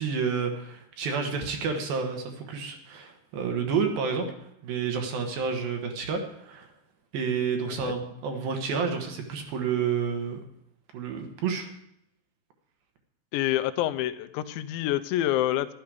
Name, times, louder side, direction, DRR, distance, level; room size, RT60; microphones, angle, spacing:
voice 1, 0.0-4.3 4.6-6.7 7.1-10.4 10.9-11.7, right 6 dB, 65° right, 4 dB, 2.5 m, -29 dB
voice 2, 13.3-15.7, left 14 dB, 80° left, 11 dB, 2.8 m, -27 dB
12.5 x 12.0 x 4.9 m, 0.76 s
omnidirectional pair, 5.6 m